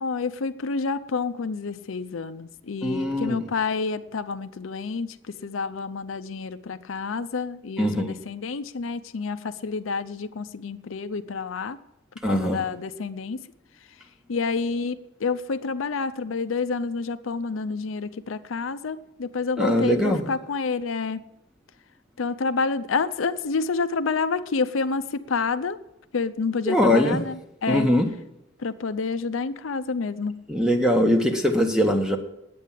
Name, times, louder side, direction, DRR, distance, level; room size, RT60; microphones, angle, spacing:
voice 1, 0.0-11.8 12.3-13.4 14.3-21.2 22.2-25.8 26.1-27.9 28.6-30.4, left 4 dB, 85° left, 12 dB, 0.6 m, -29 dB
voice 2, 2.8-3.4 7.8-8.2 12.2-12.6 19.6-20.3 26.7-27.2 27.7-28.1 30.5-32.2, equal, 5° right, 4 dB, 1.1 m, -21 dB
9.9 x 8.6 x 7.4 m, 0.88 s
head